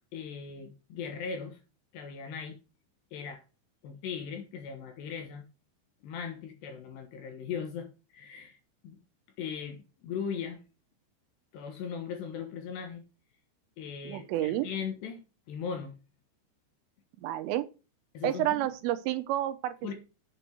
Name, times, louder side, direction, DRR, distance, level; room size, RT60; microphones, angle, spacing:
voice 1, 0.1-1.6 1.9-2.6 3.1-3.4 3.8-5.4 6.0-8.6 8.8-9.0 9.4-10.6 11.5-13.0 13.8-15.9 18.1-18.7 19.8-19.9, left 6 dB, 70° left, 3.0 m, -38 dB
voice 2, 14.0-14.7 17.2-17.7 18.2-19.9, right 14 dB, 85° right, 3.3 m, -30 dB
8.1 x 7.7 x 4.7 m
omnidirectional pair, 5.9 m